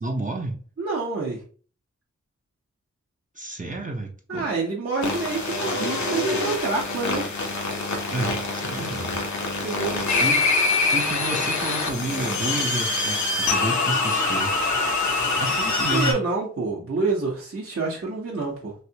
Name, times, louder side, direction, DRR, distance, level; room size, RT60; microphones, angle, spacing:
voice 1, 0.0-0.6 3.3-4.5 8.1-9.2 10.2-10.6 10.9-14.5 15.4-16.2, right 2 dB, 25° right, 0.7 m, -30 dB
voice 2, 0.8-1.4 4.3-7.3 9.6-10.0 15.9-18.7, right 3 dB, 50° right, 1.0 m, -27 dB
sound 1, 5.0-16.1, left 3 dB, 70° left, 0.9 m, -25 dB
3.2 x 2.6 x 2.8 m
cardioid pair, 45°, 29 cm